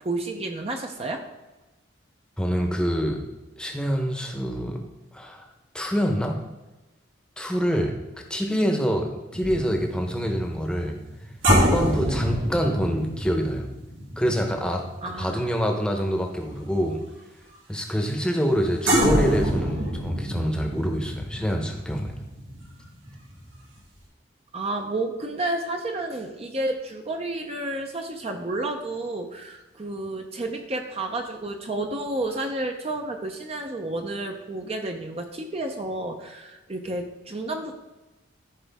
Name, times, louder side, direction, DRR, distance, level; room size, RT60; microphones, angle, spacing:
voice 1, 0.0-1.3 15.0-15.5 24.5-37.7, right 2 dB, 30° right, 3 dB, 0.6 m, -31 dB
voice 2, 2.4-3.2 3.6-4.8 5.1-5.5 5.7-6.4 7.4-7.9 8.3-11.0 11.6-13.6 14.2-14.8 15.2-17.0 17.7-22.1, equal, 5° left, 3 dB, 0.9 m, -26 dB
sound 1, 9.3-15.9 16.2-16.5 18.9-23.5 23.8-24.0, equal, 90° right, 2.8 m, -26 dB
14.0 x 4.9 x 3.5 m, 1.1 s
head